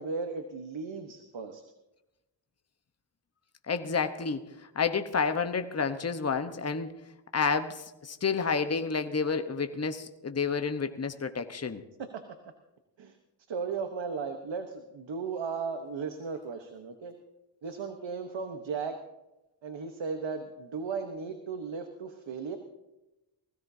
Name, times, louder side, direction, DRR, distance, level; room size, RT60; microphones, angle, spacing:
voice 1, 0.0-1.6 12.0-12.2 13.0-13.2 13.5-17.1 17.6-19.0 19.6-22.6, right 5 dB, 85° right, 6 dB, 1.2 m, -36 dB
voice 2, 3.7-6.9 7.3-11.8, left 5 dB, 35° left, 7 dB, 1.0 m, -30 dB
20.5 x 16.0 x 2.8 m, 0.98 s
cardioid pair, 60°, 44 cm